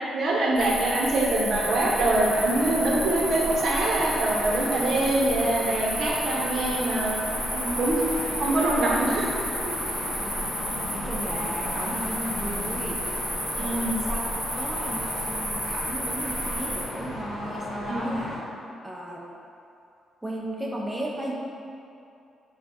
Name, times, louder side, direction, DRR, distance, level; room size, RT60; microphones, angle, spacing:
voice 1, 0.1-9.3 9.6-9.7 13.6-14.0 17.8-18.1, right 2 dB, 60° right, -4 dB, 0.8 m, -24 dB
sound 1, 0.6-16.8, equal, 20° left, 1.0 m, -32 dB
sound 2, 1.5-18.4, left 1 dB, 80° left, 0.9 m, -36 dB
voice 2, 10.2-13.0 13.6-14.3 14.5-18.5 18.8-19.2 20.2-21.3, right 1 dB, 10° right, -3 dB, 0.4 m, -35 dB
4.3 x 2.3 x 4.1 m, 2.6 s
cardioid pair, 80°, 0 cm